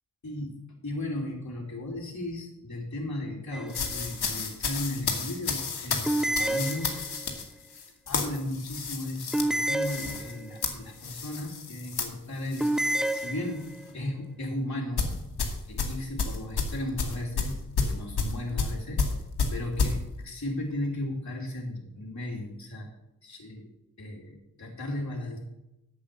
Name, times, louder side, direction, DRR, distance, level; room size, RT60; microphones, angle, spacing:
voice 1, 0.2-0.6 0.8-7.0 8.1-12.7 13.1-15.2 15.7-19.1 19.5-22.9 23.2-23.7 24.0-25.4, left 1 dB, 45° left, -3 dB, 2.7 m, -35 dB
sound 1, 3.5-4.1 6.1-7.4 9.3-10.7 12.6-13.9, right 1 dB, ahead, 0.4 m, -29 dB
sound 2, 3.7-13.3 13.6-13.9 15.0-20.0, left 5 dB, 70° left, 1.9 m, -31 dB
8.7 x 7.7 x 6.6 m, 0.92 s
supercardioid pair, 45°, 40 cm